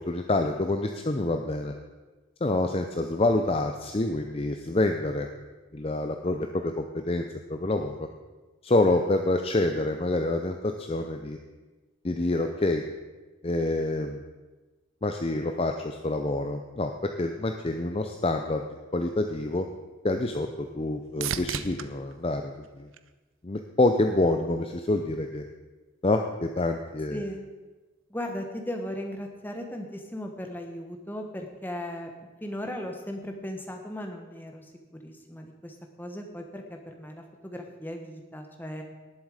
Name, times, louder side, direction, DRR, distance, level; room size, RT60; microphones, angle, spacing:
voice 1, 0.0-1.7 2.4-5.3 5.7-7.2 7.5-8.1 8.6-11.4 12.0-12.8 13.4-14.2 15.0-18.6 18.9-19.7 20.0-22.9 23.4-25.4 26.0-27.2, left 2 dB, 25° left, 5 dB, 0.5 m, -27 dB
sound 1, 19.5-23.7 24.2-24.8 32.6-32.7, right 8 dB, 75° right, 0.6 m, -39 dB
voice 2, 27.1-27.4 28.1-32.1 32.4-34.7 35.0-38.8, equal, 10° left, 3 dB, 1.2 m, -37 dB
18.5 x 7.5 x 5.0 m, 1.2 s
head